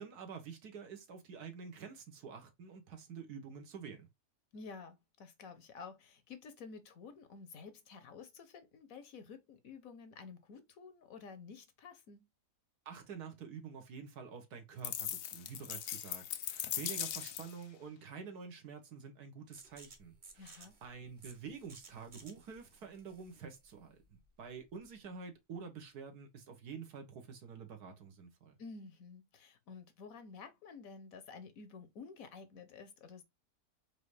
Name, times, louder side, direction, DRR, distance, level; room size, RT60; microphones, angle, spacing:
voice 1, 0.0-4.1 12.8-28.6, right 6 dB, 70° right, 1.6 m, -48 dB
voice 2, 4.5-12.3 20.4-20.7 28.6-33.2, left 5 dB, 65° left, 1.1 m, -51 dB
sound 1, 14.8-17.6, left 11 dB, 90° left, 0.6 m, -39 dB
sound 2, 19.5-25.0, right 3 dB, 35° right, 0.9 m, -58 dB
4.9 x 2.7 x 3.2 m
omnidirectional pair, 1.7 m